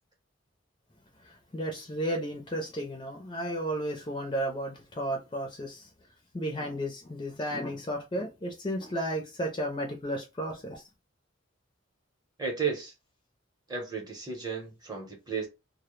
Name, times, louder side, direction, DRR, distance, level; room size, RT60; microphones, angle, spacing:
voice 1, 1.5-5.9 6.3-10.8, equal, 25° left, 0.4 m, -33 dB
voice 2, 12.4-12.9 13.7-15.5, right 5 dB, 20° right, 0.7 m, -33 dB
2.0 x 2.0 x 3.0 m
head